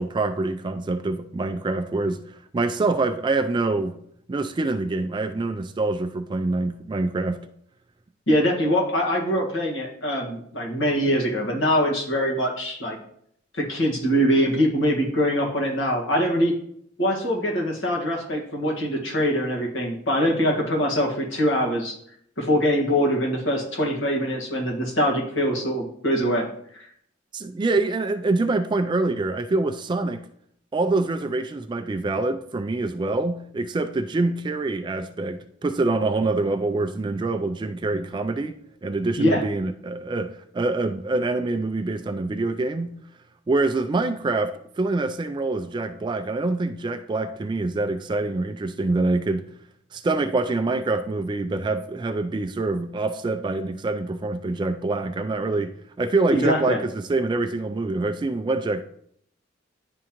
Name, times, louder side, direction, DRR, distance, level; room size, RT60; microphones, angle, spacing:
voice 1, 0.0-4.0 4.3-7.4 27.3-30.2 30.7-38.6 38.8-42.9 43.5-49.4 49.9-58.9, right 2 dB, 25° right, 0.3 m, -25 dB
voice 2, 8.3-13.0 13.6-16.5 17.0-22.0 22.4-26.5 26.7-26.8 39.2-39.4 56.3-56.8, equal, 80° left, 1.6 m, -23 dB
10.5 x 3.7 x 3.0 m
head